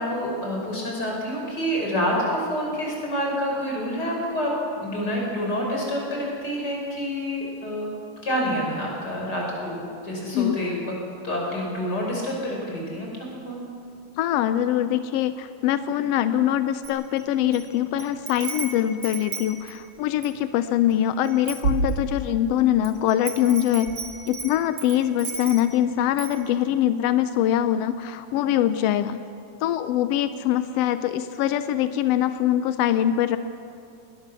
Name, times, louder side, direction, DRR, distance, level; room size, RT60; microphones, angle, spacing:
voice 1, 0.0-7.9 8.2-10.9 11.2-13.6, equal, 30° left, -2 dB, 5.9 m, -28 dB
voice 2, 14.2-23.9 24.3-29.2 29.6-33.4, left 11 dB, 80° left, 11 dB, 1.4 m, -23 dB
Wind chime, 16.8-17.6 18.0-20.4 20.9-21.0 21.2-22.4 22.8-25.8 26.2-26.4, right 4 dB, 50° right, 3.0 m, -32 dB
21.0 x 20.0 x 6.9 m, 2.5 s
omnidirectional pair, 3.5 m